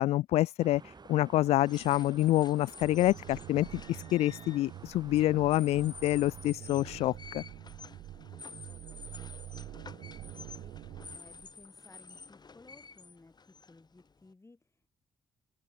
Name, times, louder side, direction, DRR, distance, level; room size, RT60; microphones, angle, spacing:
voice 1, 0.0-7.4, left 15 dB, 80° left, 0.6 m, -27 dB
sound 1, 0.6-6.5, right 4 dB, 40° right, 5.5 m, -53 dB
sound 2, 1.6-14.3, left 4 dB, 40° left, 4.6 m, -51 dB
sound 3, 2.8-11.6, right 14 dB, 80° right, 1.8 m, -47 dB
voice 2, 8.7-14.9, left 3 dB, 25° left, 7.9 m, -59 dB
open air
supercardioid pair, 50°, 11 cm